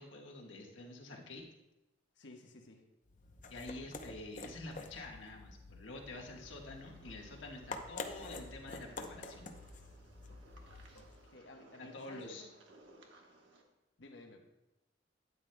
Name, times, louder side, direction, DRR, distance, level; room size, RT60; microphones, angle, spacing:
voice 1, 0.0-1.4 3.5-9.5 11.8-12.5, left 2 dB, 90° left, 0 dB, 1.4 m, -48 dB
voice 2, 2.2-2.8 10.3-10.4 10.9-12.6 14.0-14.4, left 2 dB, 70° left, 3 dB, 1.1 m, -55 dB
sound 1, 3.1-11.3, left 3 dB, 45° left, 0.7 m, -48 dB
sound 2, 6.3-13.6, right 2 dB, 80° right, 1.2 m, -62 dB
12.5 x 9.2 x 2.2 m, 0.99 s
head